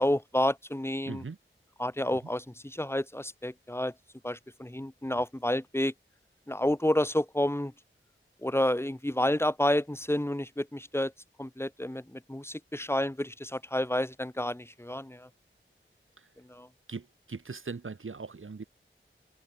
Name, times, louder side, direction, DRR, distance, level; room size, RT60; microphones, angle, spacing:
voice 1, 0.0-1.2 1.8-3.9 4.2-5.9 6.5-7.7 8.4-11.1 11.4-15.3 16.5-16.7, left 1 dB, 10° left, 1.8 m, -30 dB
voice 2, 1.1-1.4 16.2-16.3 16.9-18.6, right 4 dB, 70° right, 1.5 m, -40 dB
wide cardioid pair, 60°, 21 cm